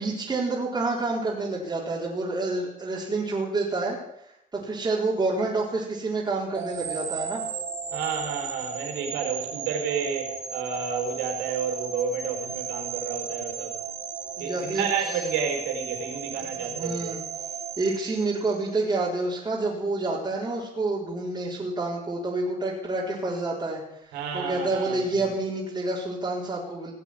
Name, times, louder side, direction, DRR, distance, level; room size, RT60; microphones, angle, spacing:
voice 1, 0.0-4.0 4.5-7.4 14.4-14.9 16.6-17.2 17.8-23.8 24.1-26.9, right 2 dB, 25° right, -5 dB, 4.3 m, -28 dB
sound 1, 6.5-18.7, right 6 dB, 45° right, 2.9 m, -35 dB
voice 2, 7.9-13.7 14.4-17.1 24.1-25.0, right 6 dB, 90° right, 2 dB, 4.6 m, -30 dB
18.0 x 8.0 x 9.1 m, 0.80 s
cardioid pair, 110°, 17 cm